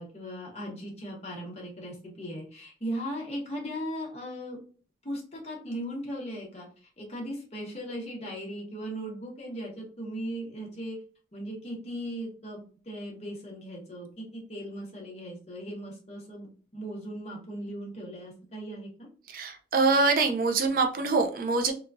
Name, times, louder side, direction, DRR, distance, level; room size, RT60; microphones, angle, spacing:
voice 1, 0.0-4.6 5.0-11.0 11.3-16.5 16.7-19.1, equal, 35° left, -2 dB, 1.0 m, -38 dB
voice 2, 19.3-21.7, right 3 dB, 50° right, 4 dB, 0.4 m, -24 dB
2.9 x 2.3 x 2.5 m, 0.38 s
head